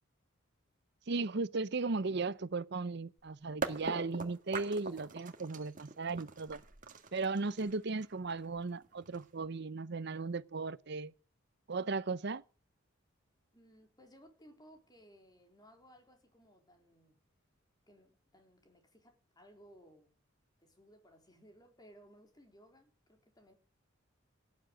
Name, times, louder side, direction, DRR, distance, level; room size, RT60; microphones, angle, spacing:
voice 1, 1.1-6.6 7.1-11.1 11.7-12.4, right 3 dB, 55° right, 0.7 m, -36 dB
sound 1, 3.2-3.3 3.6-9.5, right 3 dB, 40° right, 1.8 m, -42 dB
voice 2, 13.5-17.2 17.9-20.1 20.6-23.5, equal, 20° left, 4.0 m, -61 dB
17.5 x 10.5 x 7.7 m
head